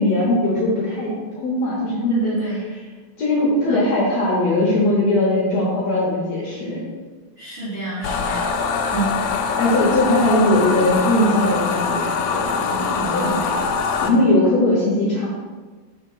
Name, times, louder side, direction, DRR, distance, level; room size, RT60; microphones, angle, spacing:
voice 1, 0.0-2.8 3.2-6.8 9.6-13.3 14.0-15.3, left 1 dB, 65° left, -5 dB, 1.7 m, -20 dB
voice 2, 2.1-2.6 3.7-3.8 7.4-8.5 8.8-9.2 13.0-13.6, right 2 dB, 55° right, -11 dB, 1.3 m, -29 dB
sound 1, 8.0-14.1, left 5 dB, 85° left, 2.4 m, -23 dB
5.4 x 3.9 x 5.5 m, 1.3 s
omnidirectional pair, 4.4 m